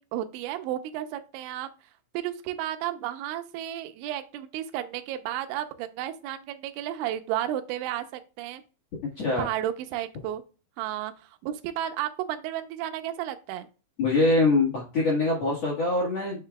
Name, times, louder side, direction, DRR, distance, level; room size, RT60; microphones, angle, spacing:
voice 1, 0.0-1.7 2.1-8.6 9.4-10.4 10.8-13.7, right 12 dB, 80° right, 8 dB, 3.0 m, -33 dB
voice 2, 14.0-16.5, left 2 dB, 80° left, -5 dB, 1.4 m, -24 dB
7.9 x 6.5 x 2.3 m, 0.33 s
omnidirectional pair, 5.7 m